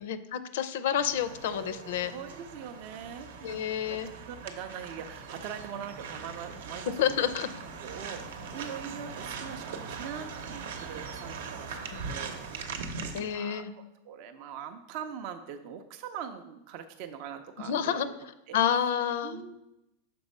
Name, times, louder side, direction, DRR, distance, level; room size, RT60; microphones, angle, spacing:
voice 1, 0.0-2.1 3.4-4.1 7.0-7.5 11.9-12.2 13.1-13.7 17.6-18.1 18.5-19.4, left 9 dB, 65° left, 13 dB, 0.5 m, -29 dB
sound 1, 1.0-13.2, right 5 dB, 70° right, 0.8 m, -41 dB
voice 2, 1.4-7.3 7.8-11.8 12.1-18.1 18.5-18.6 19.2-19.5, right 8 dB, 40° right, 6 dB, 0.4 m, -42 dB
6.0 x 4.4 x 5.3 m, 0.88 s
supercardioid pair, 170°, 0 cm